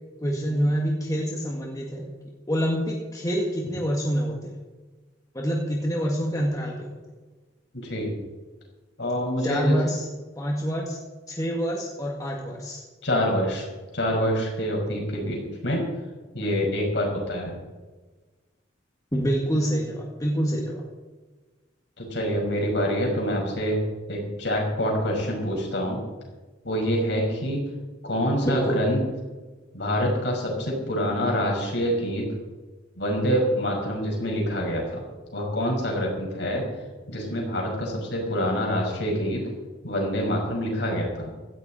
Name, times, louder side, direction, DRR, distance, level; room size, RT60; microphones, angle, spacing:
voice 1, 0.2-2.1 2.5-4.6 5.3-7.0 9.4-10.1 10.4-11.0 11.3-12.8 19.1-20.8 28.4-28.8, equal, 20° left, -2 dB, 1.9 m, -26 dB
voice 2, 7.7-8.1 9.0-9.8 13.0-13.7 13.9-15.8 16.3-17.6 22.0-23.8 24.1-26.0 26.6-27.6 28.0-29.0 29.7-32.3 33.0-35.0 35.3-36.6 37.1-39.4 39.8-41.3, equal, 60° left, 0 dB, 5.5 m, -26 dB
17.0 x 14.0 x 4.3 m, 1.3 s
head